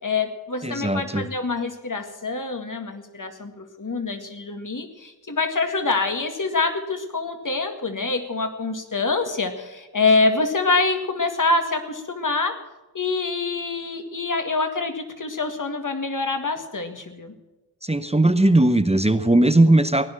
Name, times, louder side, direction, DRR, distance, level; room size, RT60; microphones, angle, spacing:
voice 1, 0.0-12.6 12.9-17.3, left 3 dB, 50° left, 6 dB, 2.0 m, -25 dB
voice 2, 0.6-1.3 17.8-20.1, right 1 dB, 15° right, 10 dB, 0.9 m, -18 dB
16.5 x 10.5 x 7.4 m, 1.1 s
wide cardioid pair, 65°, 40 cm